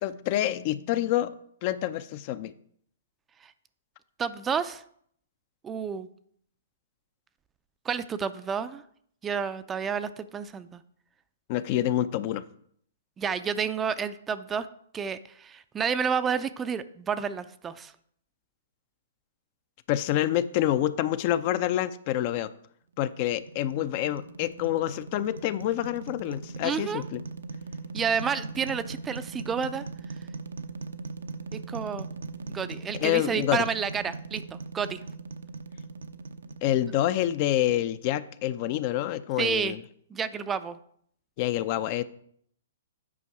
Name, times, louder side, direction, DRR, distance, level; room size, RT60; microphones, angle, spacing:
voice 1, 0.0-1.3 1.6-2.5 11.5-12.4 19.9-22.5 23.0-27.2 33.0-33.6 36.6-39.8 41.4-42.0, left 13 dB, 40° left, 14 dB, 0.5 m, -27 dB
voice 2, 4.2-4.8 5.6-6.1 7.8-8.8 9.2-10.8 13.2-14.7 14.9-17.9 26.6-27.0 27.9-29.8 31.5-32.1 32.5-35.0 39.4-39.7 40.1-40.8, right 6 dB, 15° right, 13 dB, 0.4 m, -30 dB
sound 1, 23.0-38.2, right 3 dB, 80° right, 0.7 m, -40 dB
8.5 x 5.3 x 4.7 m, 0.64 s
hypercardioid pair, 125°, 0 cm